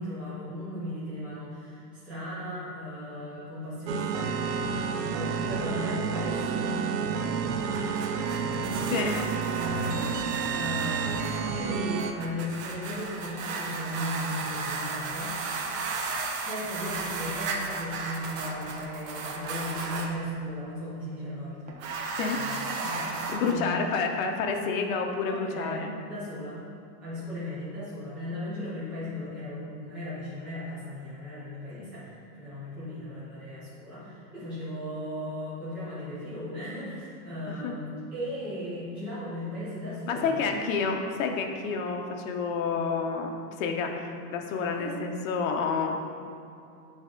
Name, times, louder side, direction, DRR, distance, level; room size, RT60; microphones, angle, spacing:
voice 1, 0.0-9.1 9.5-15.7 16.4-21.6 22.3-23.7 24.4-24.6 25.2-26.6 27.0-40.3 44.7-45.0, left 1 dB, 5° right, -12 dB, 0.3 m, -37 dB
sound 1, 3.9-12.1, right 6 dB, 85° right, 0.7 m, -30 dB
sound 2, 7.5-20.1 21.7-23.5, right 4 dB, 55° right, 0.8 m, -35 dB
voice 2, 8.9-9.2 22.2-22.4 23.3-25.9 31.8-31.9 37.5-37.7 40.1-45.9, left 5 dB, 55° left, 3 dB, 0.8 m, -29 dB
7.7 x 3.6 x 3.7 m, 2.6 s
supercardioid pair, 160°, 49 cm